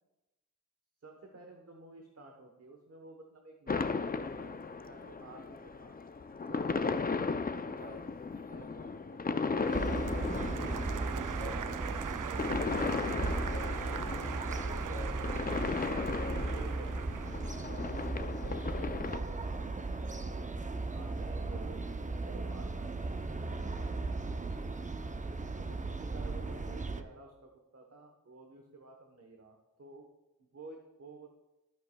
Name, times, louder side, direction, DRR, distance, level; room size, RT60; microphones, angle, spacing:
voice 1, 1.0-6.0 6.5-7.3 7.6-8.0 8.3-10.6 11.2-14.0 14.6-20.5 20.9-23.1 25.5-30.1 30.4-31.3, right 2 dB, 55° right, 2 dB, 1.1 m, -52 dB
sound 1, 3.7-19.2, left 4 dB, 30° left, 0.5 m, -36 dB
Applause, 9.6-18.7, right 8 dB, 85° right, 0.5 m, -42 dB
sound 2, 9.7-27.0, right 3 dB, 25° right, 0.6 m, -37 dB
13.0 x 9.3 x 2.3 m, 0.97 s
wide cardioid pair, 70°, 31 cm